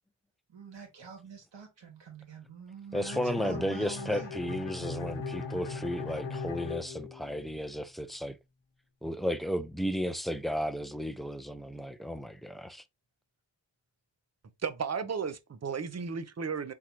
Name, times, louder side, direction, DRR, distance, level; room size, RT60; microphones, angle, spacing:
voice 1, 0.5-4.3, right 6 dB, 70° right, 2.2 m, -45 dB
Bowed string instrument, 2.9-7.7, left 4 dB, 80° left, 0.9 m, -39 dB
voice 2, 2.9-8.4 9.0-12.8, equal, ahead, 0.4 m, -34 dB
voice 3, 14.6-16.7, right 6 dB, 35° right, 0.7 m, -34 dB
4.2 x 3.7 x 3.1 m
cardioid pair, 80°, 44 cm